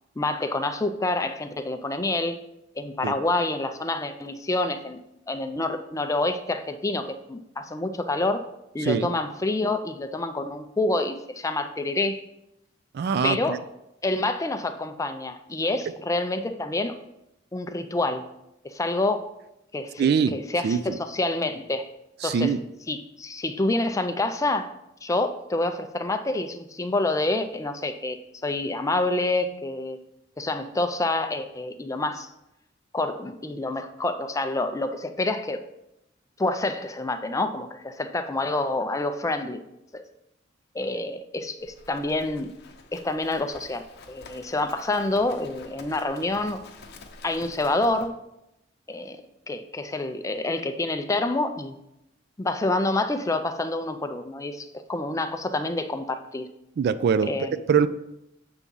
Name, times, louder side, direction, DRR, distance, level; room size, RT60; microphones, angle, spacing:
voice 1, 0.2-2.4 2.8-5.0 5.3-8.4 8.7-12.2 13.2-13.6 14.0-17.0 17.5-18.2 18.6-19.3 19.7-21.9 22.2-22.5 22.9-24.7 25.0-28.2 28.4-30.0 30.4-32.3 32.9-35.6 36.4-39.6 39.9-40.0 40.7-42.5 42.9-46.6 47.2-48.2 48.9-49.2 49.5-51.8 52.4-56.5 57.3-57.5, left 2 dB, 15° left, 7 dB, 0.4 m, -27 dB
voice 2, 12.9-13.6 20.0-20.3 20.6-21.0 22.2-22.6 56.8-57.3 57.7-57.9, right 6 dB, 55° right, 13 dB, 0.3 m, -23 dB
Livestock farm animals working animals, 41.6-48.1, left 3 dB, 60° left, 0.7 m, -48 dB
6.9 x 3.6 x 5.4 m, 0.85 s
head